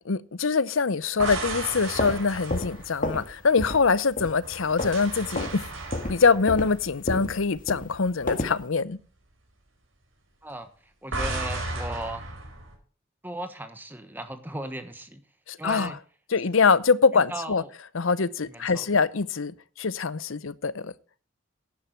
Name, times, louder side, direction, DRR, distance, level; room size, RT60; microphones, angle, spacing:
voice 1, 0.1-5.6 6.1-9.0 15.5-15.9 16.3-17.6 17.9-20.9, left 5 dB, 80° left, 0.7 m, -24 dB
sound 1, 1.0-3.9 4.4-7.8 8.1-8.4 11.1-12.7, right 2 dB, 75° right, 4.7 m, -35 dB
sound 2, 1.8-3.3 3.6-3.9 4.2-5.1 5.3-5.6 5.9-8.6, left 1 dB, 40° left, 1.8 m, -31 dB
voice 2, 11.0-12.2 13.2-15.2 15.6-16.0 17.3-17.7 18.5-18.9, right 1 dB, 10° right, 1.1 m, -36 dB
10.5 x 10.5 x 4.5 m
head